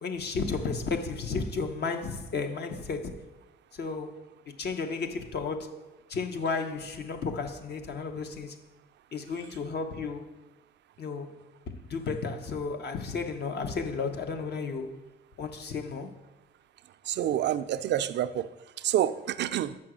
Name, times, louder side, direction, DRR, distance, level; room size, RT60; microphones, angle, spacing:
voice 1, 0.0-3.2 3.7-4.2 4.5-5.8 6.1-8.6 9.1-10.3 11.0-11.4 11.7-15.0 15.4-16.1, left 4 dB, 55° left, 0.9 m, -33 dB
voice 2, 17.0-18.5 18.8-19.8, right 11 dB, 65° right, 0.4 m, -28 dB
6.1 x 5.9 x 6.2 m
cardioid pair, 90°, 20 cm